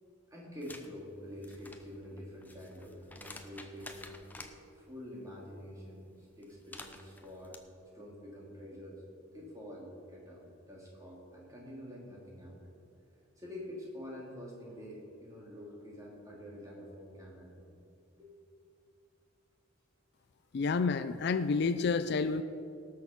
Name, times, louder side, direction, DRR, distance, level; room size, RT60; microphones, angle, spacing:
voice 1, 0.3-4.5 4.7-7.6 7.9-9.0 9.3-12.7 13.4-17.7 18.2-18.5, equal, 15° right, -4 dB, 2.8 m, -47 dB
Papier plié déplié, 0.6-0.9 1.3-4.5 6.4-7.6, left 2 dB, 10° left, 0.7 m, -50 dB
voice 2, 20.5-22.4, left 4 dB, 55° left, 13 dB, 0.4 m, -29 dB
18.0 x 6.5 x 5.9 m, 2.6 s
head